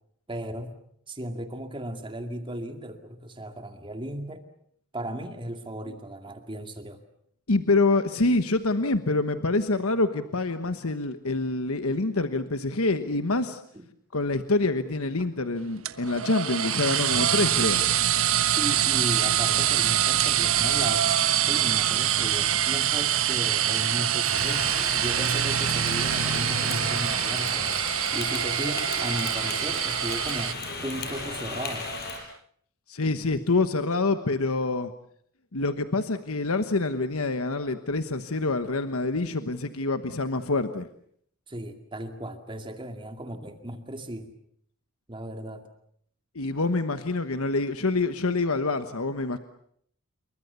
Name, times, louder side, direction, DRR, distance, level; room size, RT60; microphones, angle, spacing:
voice 1, 0.3-0.7 1.1-4.4 4.9-7.0 13.7-13.8 15.2-15.3 18.5-24.7 25.0-27.8 28.1-30.6 30.8-31.9 41.5-44.3 45.1-45.7, right 1 dB, 25° right, 6 dB, 2.2 m, -36 dB
voice 2, 7.5-13.6 14.1-17.8 32.9-34.9 35.5-40.9 46.3-49.4, left 3 dB, 70° left, 9 dB, 1.2 m, -26 dB
sound 1, 15.9-30.5, right 10 dB, 65° right, 1.3 m, -25 dB
Rain, 24.2-32.2, left 3 dB, 45° left, 5.9 m, -35 dB
28.0 x 23.5 x 6.9 m, 0.67 s
head